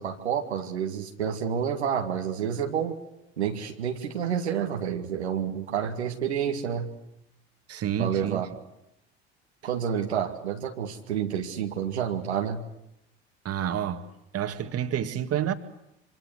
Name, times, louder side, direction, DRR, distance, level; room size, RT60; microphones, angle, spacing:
voice 1, 0.0-3.0 3.4-6.9 8.0-8.5 9.6-12.6, right 8 dB, 85° right, 2 dB, 2.0 m, -29 dB
voice 2, 7.7-8.4 13.4-15.5, right 9 dB, 50° right, 8 dB, 2.1 m, -29 dB
26.5 x 25.0 x 8.0 m, 0.81 s
hypercardioid pair, 60°, 32 cm